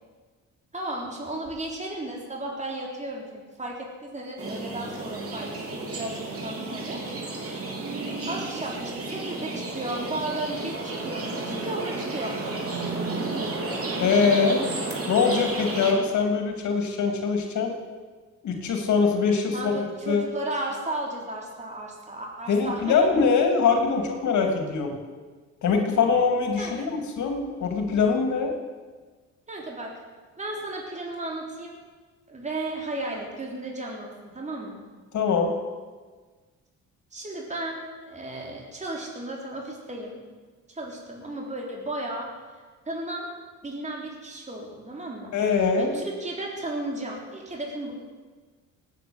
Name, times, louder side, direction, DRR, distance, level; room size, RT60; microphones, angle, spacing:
voice 1, 0.7-7.0 7.3-12.4 19.5-23.0 26.6-26.9 29.5-29.9 30.4-31.8 32.3-34.8 37.1-40.2 40.7-42.3 42.9-43.3 43.6-45.3 45.8-47.9, right 1 dB, 25° right, -1 dB, 3.8 m, -34 dB
sound 1, 4.4-15.9, right 2 dB, 50° right, 3.9 m, -32 dB
voice 2, 14.0-14.6 15.1-17.7 18.4-20.2 22.5-25.0 25.6-28.5 35.1-35.5 45.3-46.0, left 5 dB, 70° left, 4 dB, 3.0 m, -23 dB
19.0 x 9.5 x 8.0 m, 1.4 s
cardioid pair, 90°, 30 cm